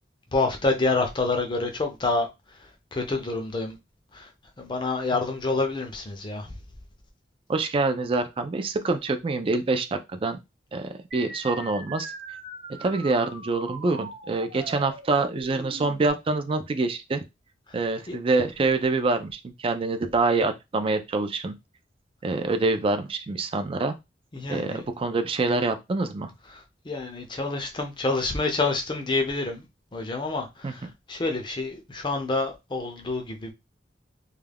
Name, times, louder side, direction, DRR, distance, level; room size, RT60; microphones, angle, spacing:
voice 1, 0.3-2.3 2.6-3.8 4.1-4.3 4.6-6.6 17.7-17.8 18.1-18.2 24.3-24.9 26.5-29.7 29.9-33.5, left 3 dB, 25° left, 0.5 m, -28 dB
voice 2, 7.5-10.4 10.7-12.1 12.8-17.2 17.7-21.5 22.2-24.0 24.5-26.3 30.6-30.7, right 3 dB, 30° right, 0.3 m, -26 dB
sound 1, 11.1-16.1, right 2 dB, 50° right, 0.8 m, -41 dB
2.3 x 2.2 x 3.3 m
head